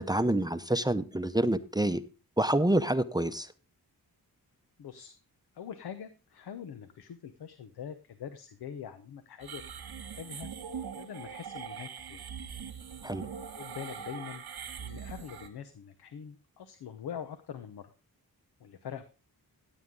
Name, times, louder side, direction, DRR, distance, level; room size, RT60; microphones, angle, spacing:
voice 1, 0.0-2.0 2.4-3.5 13.0-13.3, right 1 dB, 10° right, 11 dB, 0.6 m, -27 dB
voice 2, 4.8-5.2 5.5-9.6 10.0-10.5 10.9-12.3 13.6-14.4 14.8-17.9 18.6-19.0, left 8 dB, 90° left, 10 dB, 0.9 m, -43 dB
sound 1, 9.4-15.5, right 7 dB, 85° right, 1.7 m, -42 dB
15.5 x 7.9 x 3.7 m, 0.33 s
cardioid pair, 70°, 37 cm